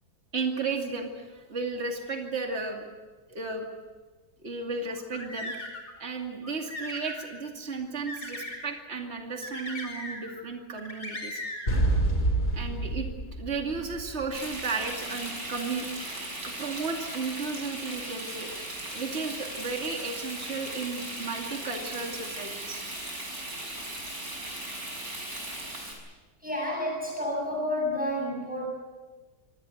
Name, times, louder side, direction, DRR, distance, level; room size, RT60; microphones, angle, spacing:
voice 1, 0.3-2.9 3.3-3.7 4.4-5.5 6.0-11.4 12.5-13.1 13.4-15.9 16.4-18.6 18.9-22.8, right 4 dB, 35° right, 2 dB, 2.8 m, -34 dB
sound 1, 4.9-5.9 6.4-7.3 8.1-8.6 9.4-10.4 10.8-11.8, left 1 dB, 60° left, 5.3 m, -38 dB
sound 2, 11.7-14.6, right 2 dB, 30° left, 4.0 m, -27 dB
Frying (food), 14.3-25.9, right 1 dB, 55° right, 6.4 m, -38 dB
voice 2, 26.4-28.7, left 1 dB, 5° right, -2 dB, 7.2 m, -30 dB
25.5 x 18.5 x 8.0 m, 1.3 s
omnidirectional pair, 1.9 m